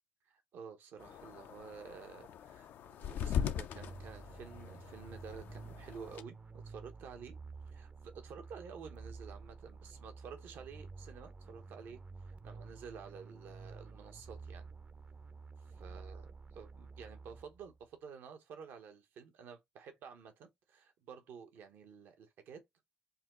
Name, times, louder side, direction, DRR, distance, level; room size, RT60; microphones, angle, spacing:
voice 1, 0.3-7.4 7.7-7.9 8.2-12.0 12.3-14.7 15.7-16.2 16.5-22.6, right 6 dB, 80° right, 0.8 m, -51 dB
sound 1, 1.0-6.2, left 8 dB, 75° left, 0.4 m, -40 dB
sound 2, 3.7-17.8, right 4 dB, 40° right, 0.5 m, -51 dB
4.1 x 2.3 x 3.6 m
supercardioid pair, 65°, 4 cm